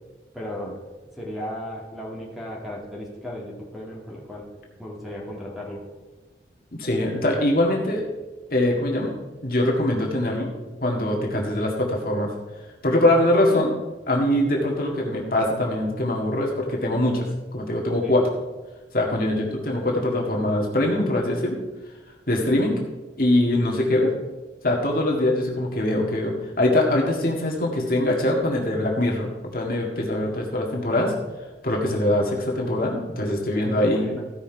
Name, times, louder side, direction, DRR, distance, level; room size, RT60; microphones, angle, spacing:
voice 1, 0.3-0.8 1.1-4.5 4.8-5.9 18.0-18.2 33.5-34.2, equal, ahead, -4 dB, 2.1 m, -35 dB
voice 2, 6.7-8.0 8.5-9.1 9.4-10.5 10.8-12.3 12.8-13.8 14.1-17.3 17.5-18.2 18.9-21.6 22.3-22.8 23.2-24.1 24.6-29.3 29.5-31.1 31.6-34.1, left 1 dB, 50° left, -2 dB, 1.9 m, -22 dB
15.5 x 5.8 x 4.6 m, 1.2 s
head